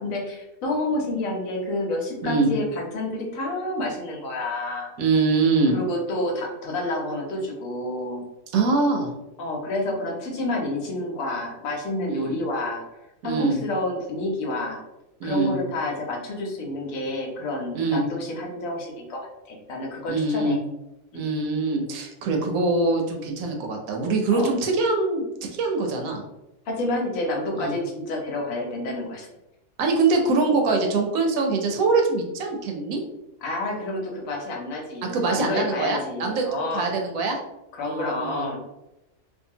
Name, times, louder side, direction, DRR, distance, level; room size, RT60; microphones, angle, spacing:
voice 1, 0.0-4.9 5.7-8.2 9.4-12.8 13.2-14.8 15.2-19.2 19.5-20.6 21.1-21.4 24.3-24.5 26.7-29.3 33.4-36.9 37.7-38.6, left 2 dB, 75° left, 0 dB, 1.1 m, -29 dB
voice 2, 5.0-5.8 8.5-9.1 12.1-12.4 13.2-13.6 15.2-15.6 17.7-18.0 20.1-20.6 21.1-26.2 27.6-27.7 29.8-33.0 35.1-36.5 36.7-37.4 37.8-38.5, right 3 dB, 80° right, 2 dB, 1.0 m, -23 dB
2.7 x 2.3 x 2.7 m, 0.93 s
omnidirectional pair, 1.5 m